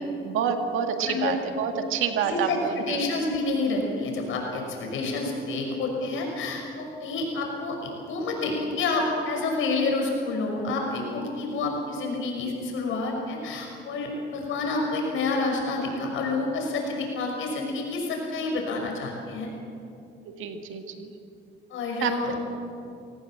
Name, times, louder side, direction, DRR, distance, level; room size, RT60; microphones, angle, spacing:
voice 1, 0.2-3.1 20.4-21.1 22.0-22.1, right 7 dB, 90° right, 6 dB, 1.9 m, -28 dB
voice 2, 1.0-1.4 2.2-19.5 21.7-22.4, left 3 dB, 85° left, 1 dB, 6.0 m, -29 dB
24.0 x 18.0 x 7.6 m, 2.6 s
cardioid pair, 90°, 20 cm